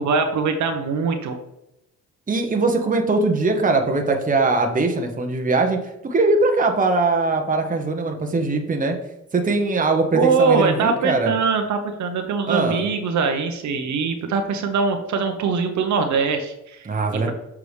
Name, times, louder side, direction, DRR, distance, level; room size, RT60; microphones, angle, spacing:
voice 1, 0.0-1.4 10.1-16.9, right 5 dB, 70° right, 6 dB, 0.9 m, -22 dB
voice 2, 2.3-9.0 9.3-11.3 12.5-12.8 16.8-17.3, right 3 dB, 25° right, 3 dB, 1.1 m, -21 dB
6.9 x 4.8 x 3.3 m, 0.86 s
cardioid pair, 90°, 30 cm